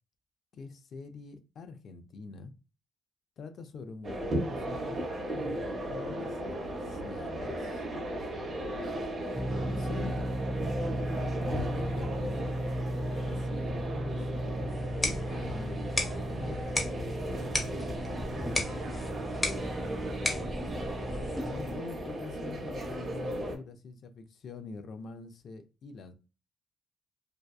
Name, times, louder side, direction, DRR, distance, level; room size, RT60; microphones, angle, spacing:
voice 1, 0.5-2.5 3.4-5.0 5.3-6.4 6.7-7.9 9.5-10.3 11.5-12.5 13.2-14.3 14.9-16.8 21.4-26.1, left 4 dB, 60° left, 0.5 m, -44 dB
sound 1, 4.0-23.5, right 1 dB, 45° right, 0.8 m, -36 dB
sound 2, 9.3-21.8, right 1 dB, 5° right, 0.4 m, -36 dB
sound 3, 14.7-21.7, left 2 dB, 20° left, 0.9 m, -36 dB
voice 2, 18.5-20.8, right 5 dB, 70° right, 0.5 m, -53 dB
2.7 x 2.2 x 2.3 m
cardioid pair, 90°, 0 cm